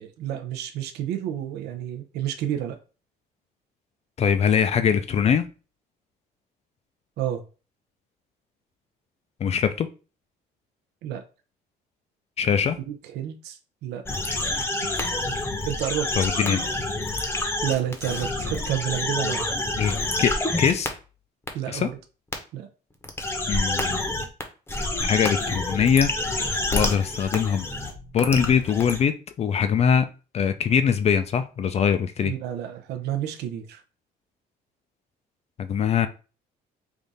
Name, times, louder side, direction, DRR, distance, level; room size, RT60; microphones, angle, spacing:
voice 1, 0.0-2.8 7.2-7.4 11.0-11.2 12.8-14.0 14.4-14.9 15.7-16.1 17.4-19.5 21.5-22.0 22.5-22.7 32.2-33.8, right 11 dB, 75° right, 0.6 m, -30 dB
voice 2, 4.2-5.4 9.4-9.9 12.4-12.8 16.2-16.6 19.8-20.9 21.7-21.9 23.5-24.0 25.0-26.1 26.7-27.7 28.1-30.1 30.3-32.3 35.6-36.1, left 7 dB, 40° left, 0.4 m, -22 dB
sound 1, 14.1-20.9 21.5-21.6 22.3-22.4 23.0-24.4 24.7-29.0, left 2 dB, 15° left, 0.8 m, -28 dB
3.5 x 2.4 x 4.0 m
cardioid pair, 110°, 17 cm